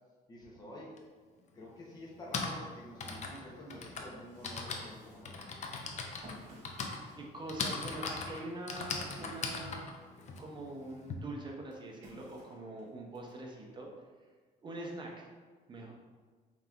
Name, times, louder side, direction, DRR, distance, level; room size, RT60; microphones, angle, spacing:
voice 1, 0.3-1.0 1.5-5.6, equal, 25° left, -4 dB, 0.9 m, -49 dB
Typing, 1.0-1.1 2.0-11.1, left 4 dB, 45° left, 0.5 m, -39 dB
sound 1, 4.1-10.3 10.7-13.3, equal, 45° right, 1.3 m, -58 dB
voice 2, 7.2-9.9 10.4-13.9 14.6-15.3 15.7-15.9, right 2 dB, 25° right, 0 dB, 0.8 m, -44 dB
5.3 x 2.9 x 2.5 m, 1.4 s
cardioid pair, 110°, 17 cm